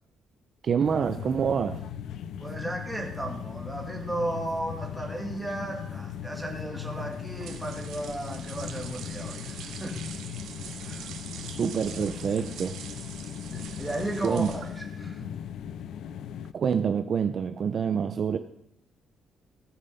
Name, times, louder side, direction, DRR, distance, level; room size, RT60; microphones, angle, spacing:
voice 1, 0.6-1.8 11.4-12.8 14.2-14.5 16.5-18.4, right 7 dB, 40° right, 8 dB, 0.6 m, -26 dB
sound 1, 0.8-16.5, left 9 dB, 65° left, 0.7 m, -38 dB
voice 2, 2.4-10.0 10.8-11.1 13.5-15.3, right 1 dB, 5° right, 0 dB, 2.3 m, -35 dB
sound 2, 7.1-14.9, right 8 dB, 75° right, 1.6 m, -44 dB
17.0 x 9.4 x 5.7 m, 0.76 s
cardioid pair, 170°, 0 cm